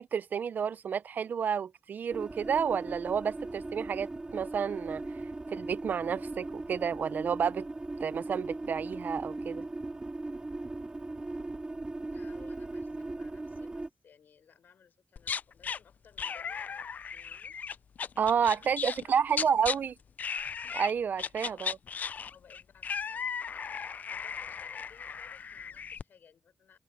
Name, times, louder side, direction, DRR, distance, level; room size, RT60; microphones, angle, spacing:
voice 1, 0.0-5.0 5.5-7.7 8.0-9.6 18.2-19.9 20.7-21.8, right 7 dB, 65° right, 0.5 m, -30 dB
sound 1, 2.1-13.9, right 2 dB, 25° right, 2.0 m, -39 dB
voice 2, 12.1-17.6 18.4-19.8 21.4-21.6 22.3-23.7 24.1-26.8, left 7 dB, 75° left, 6.4 m, -60 dB
sound 2, 15.2-15.8 16.2-19.0 19.3-19.8 20.2-20.9 21.2-26.0, left 6 dB, 55° left, 0.3 m, -36 dB
open air
cardioid pair, 75°, 3 cm